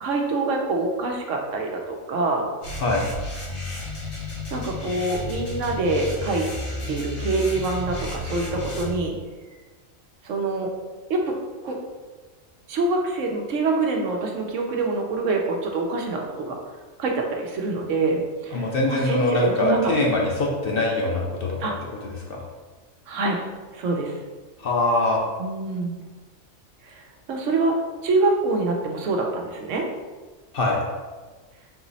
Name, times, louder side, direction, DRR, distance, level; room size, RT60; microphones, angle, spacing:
voice 1, 0.0-2.5 4.5-6.5 6.9-9.1 10.2-10.7 11.1-11.3 11.6-11.8 12.7-16.6 17.0-19.9 21.6-21.7 23.1-23.4 23.7-24.2 25.4-26.1 26.8-27.0 27.3-27.8 28.0-29.8, right 3 dB, 75° right, 1 dB, 1.0 m, -25 dB
sound 1, 2.6-8.9, left 1 dB, 80° left, 1.9 m, -32 dB
voice 2, 18.5-21.6 22.0-22.4 24.6-25.2 30.5-30.8, left 2 dB, 55° left, -2 dB, 0.7 m, -23 dB
3.9 x 3.0 x 4.0 m, 1.3 s
omnidirectional pair, 1.4 m